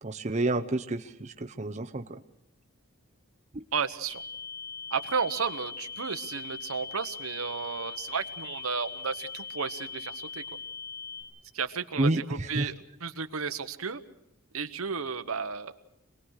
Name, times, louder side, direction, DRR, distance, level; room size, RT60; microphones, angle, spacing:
voice 1, 0.0-2.2 3.5-3.6 12.0-12.7, right 2 dB, 35° right, 6 dB, 0.8 m, -29 dB
voice 2, 3.7-4.2 4.9-10.4 11.5-12.7 13.0-14.0 14.5-15.7, right 5 dB, 80° right, 10 dB, 1.1 m, -33 dB
sound 1, 4.1-11.2, left 6 dB, 80° left, 4.5 m, -40 dB
26.5 x 19.5 x 6.5 m, 0.82 s
head